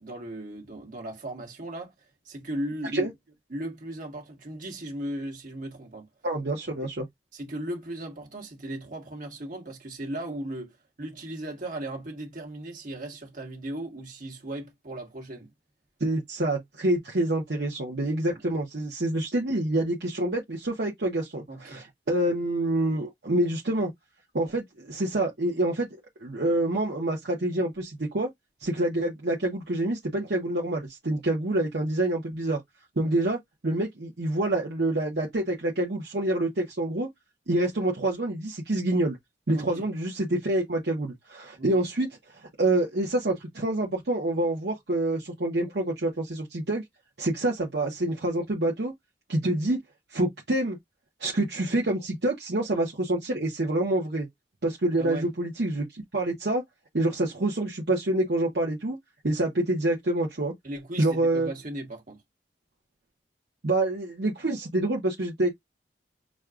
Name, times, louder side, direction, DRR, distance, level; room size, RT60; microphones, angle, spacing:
voice 1, 0.0-3.1 3.5-6.1 6.7-6.8 7.3-15.5 18.3-18.4 21.5-21.9 39.5-39.9 41.6-41.8 55.0-55.3 60.6-62.2, right 1 dB, 50° right, 1.5 m, -37 dB
voice 2, 6.2-7.0 16.0-23.9 24.3-25.9 26.2-28.3 28.6-32.6 33.0-37.1 37.5-39.2 39.5-46.8 47.2-48.9 49.3-49.8 50.1-50.8 51.2-54.3 54.6-56.6 56.9-59.0 59.2-60.5 61.0-61.5 63.6-65.5, right 1 dB, 65° right, 0.9 m, -27 dB
6.2 x 2.3 x 2.4 m
head